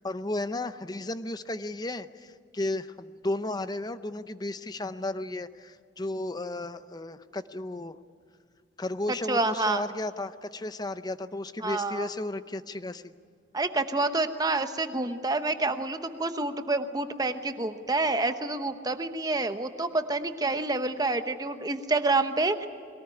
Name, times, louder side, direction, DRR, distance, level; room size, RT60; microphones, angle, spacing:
voice 1, 0.0-8.0 8.8-13.1, left 2 dB, 20° left, 12 dB, 0.6 m, -34 dB
voice 2, 9.3-9.8 11.6-12.1 13.5-22.7, right 2 dB, 20° right, 8 dB, 0.9 m, -28 dB
22.0 x 19.0 x 9.8 m, 2.2 s
head